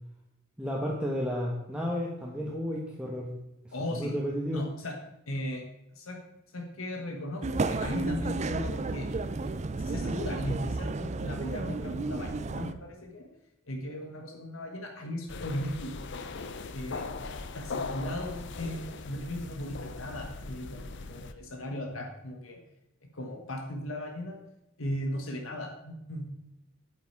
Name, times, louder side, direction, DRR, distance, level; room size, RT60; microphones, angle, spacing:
voice 1, 0.6-3.3 3.6-4.6, equal, 5° right, -3 dB, 1.2 m, -32 dB
voice 2, 3.7-4.1 4.5-4.9 5.3-5.6 5.9-6.2 6.5-9.1 9.4-9.5 9.8-13.3 13.7-16.2 16.7-22.6 23.1-24.4 24.8-26.3, left 1 dB, 90° left, 2 dB, 1.5 m, -37 dB
sound 1, 7.4-12.7, right 3 dB, 35° right, 0.5 m, -32 dB
sound 2, 15.3-21.3, left 3 dB, 60° left, 0.7 m, -39 dB
8.8 x 8.1 x 4.8 m, 0.89 s
head